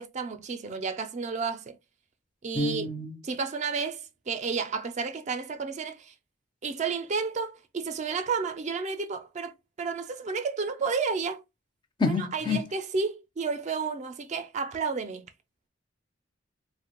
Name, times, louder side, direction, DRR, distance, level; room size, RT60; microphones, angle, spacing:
voice 1, 0.0-1.8 2.4-2.9 3.2-6.1 6.6-11.4 12.0-15.3, right 5 dB, 40° right, 0.4 m, -31 dB
voice 2, 2.5-3.2 12.0-12.6, left 3 dB, 25° left, 0.4 m, -28 dB
3.2 x 2.1 x 2.9 m
head